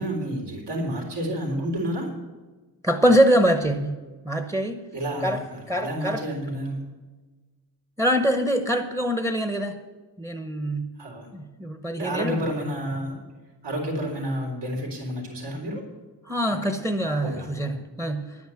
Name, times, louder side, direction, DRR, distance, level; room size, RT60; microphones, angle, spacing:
voice 1, 0.0-2.1 3.1-3.2 4.9-6.9 11.0-11.3 12.0-13.2 13.6-15.8 16.5-16.6 17.2-17.5, equal, 80° right, 0 dB, 3.8 m, -30 dB
voice 2, 2.8-4.0 4.2-4.8 5.2-5.4 5.7-6.2 8.0-9.8 10.2-10.9 11.3-12.4 16.3-18.4, equal, 10° right, 7 dB, 0.9 m, -24 dB
11.0 x 9.6 x 7.7 m, 1.3 s
wide cardioid pair, 135°, 41 cm